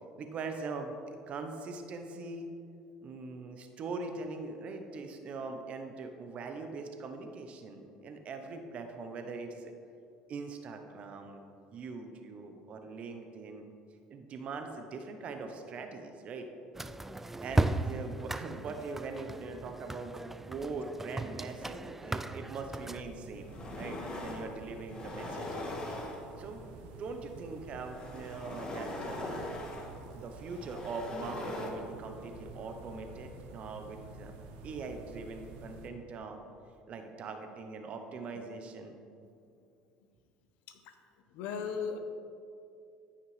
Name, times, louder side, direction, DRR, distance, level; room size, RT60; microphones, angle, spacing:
voice 1, 0.2-2.5 3.0-9.7 10.3-11.4 11.7-13.6 14.1-16.5 17.4-25.5 26.4-29.4 30.1-34.3 34.6-36.4 36.9-38.9, right 4 dB, 50° right, 6 dB, 1.0 m, -42 dB
sound 1, 16.8-23.0, right 2 dB, 10° right, 0.3 m, -36 dB
sound 2, 22.8-22.9 23.3-24.5 24.9-26.5 27.7-31.7, left 2 dB, 30° left, 1.5 m, -41 dB
sound 3, 22.8-35.9, right 3 dB, 70° right, 0.9 m, -50 dB
voice 2, 41.3-42.0, left 6 dB, 70° left, 7 dB, 0.8 m, -39 dB
14.0 x 5.7 x 3.4 m, 2.5 s
hypercardioid pair, 85°, 3 cm